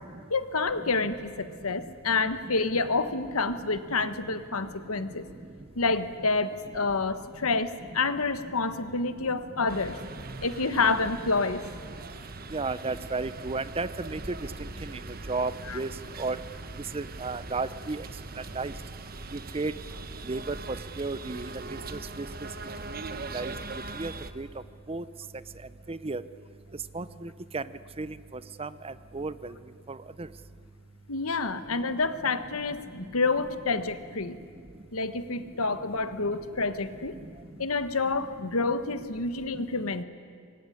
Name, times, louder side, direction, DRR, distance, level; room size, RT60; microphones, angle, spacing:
voice 1, 0.3-5.3 5.7-10.0 10.4-11.6 15.7-15.8 31.1-34.4 34.9-37.2 37.6-40.0, left 3 dB, 85° left, 11 dB, 1.4 m, -28 dB
sound 1, 9.7-24.3, right 3 dB, 45° right, 1.3 m, -41 dB
voice 2, 12.5-14.2 15.3-15.9 16.2-16.4 16.9-18.0 18.6-18.7 19.5-19.7 20.3-20.6 21.0-21.4 21.9-22.3 23.3-23.5 24.0-24.5 24.9-25.0 25.9-26.2 26.9-27.6 28.0-28.1 28.6-29.5 29.9-30.0, right 3 dB, 25° right, 15 dB, 0.7 m, -32 dB
25.5 x 22.0 x 10.0 m, 2.1 s
head